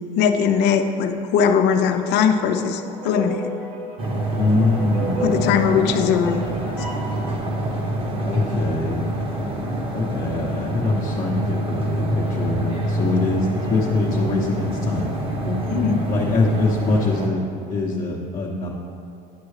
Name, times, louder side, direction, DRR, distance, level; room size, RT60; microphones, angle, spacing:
voice 1, 0.2-3.4 5.2-6.4 6.8-6.9 15.7-16.1, left 7 dB, 60° left, 7 dB, 0.6 m, -20 dB
sound 1, 1.4-7.1, right 1 dB, 70° right, 1.7 m, -34 dB
sound 2, 4.0-17.3, right 1 dB, 25° right, 1.1 m, -26 dB
voice 2, 4.4-5.5 8.2-9.0 9.9-15.6 16.1-17.4 17.7-18.7, left 3 dB, 25° left, -4 dB, 0.9 m, -23 dB
9.4 x 6.0 x 3.2 m, 2.6 s
supercardioid pair, 105°, 20 cm